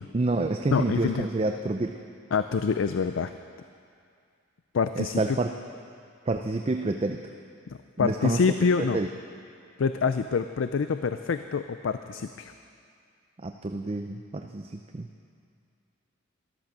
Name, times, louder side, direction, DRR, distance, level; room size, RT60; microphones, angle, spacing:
voice 1, 0.1-2.0 5.0-5.5 6.3-7.2 8.0-8.4 8.9-9.1 13.4-15.1, right 2 dB, 30° right, 5 dB, 0.4 m, -28 dB
voice 2, 0.7-1.3 2.3-3.3 4.7-5.4 7.7-9.0 9.8-12.5, left 5 dB, 70° left, 10 dB, 0.4 m, -26 dB
13.5 x 13.0 x 6.1 m, 2.3 s
head